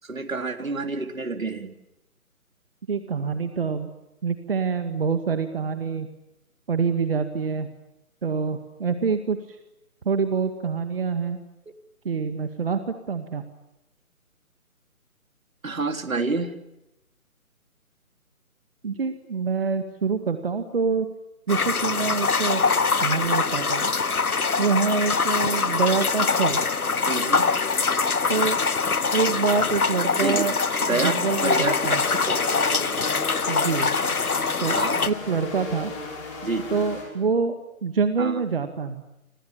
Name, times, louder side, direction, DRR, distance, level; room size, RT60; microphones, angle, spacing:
voice 1, 0.0-1.7 15.6-16.5 27.1-27.5 30.2-30.5 30.8-31.1 31.4-31.7 32.1-32.4 34.7-35.0 36.4-36.8 38.2-38.4, right 3 dB, 65° right, 7 dB, 3.5 m, -28 dB
voice 2, 2.9-3.9 4.2-6.1 6.7-7.7 8.2-9.6 10.1-11.4 12.0-13.4 18.8-21.1 21.5-22.6 23.0-23.9 24.6-26.6 28.3-28.6 29.1-30.6 30.9-32.0 33.5-33.9 34.6-34.8 35.1-35.9 36.7-37.6 37.8-39.0, right 5 dB, 40° right, 8 dB, 2.1 m, -26 dB
sound 1, 21.5-35.1, left 4 dB, 85° left, 1.1 m, -23 dB
sound 2, 31.2-37.0, left 3 dB, 20° left, 7.0 m, -35 dB
29.5 x 26.5 x 7.4 m, 0.90 s
figure-of-eight pair, 150°, 43 cm